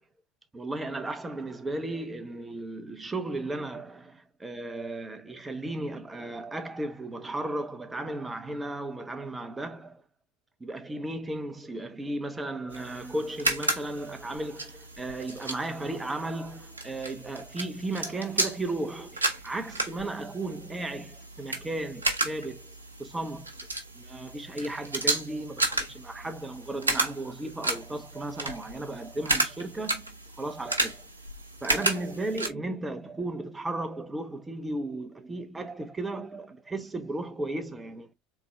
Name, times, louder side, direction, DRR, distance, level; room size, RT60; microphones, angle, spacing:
voice 1, 0.5-10.0 10.6-23.5 23.9-31.1 31.6-38.1, right 2 dB, 15° right, 0.9 m, -35 dB
sound 1, 12.7-32.5, right 2 dB, 85° right, 0.8 m, -33 dB
3.8 x 3.6 x 3.2 m
figure-of-eight pair, 70°, 0 cm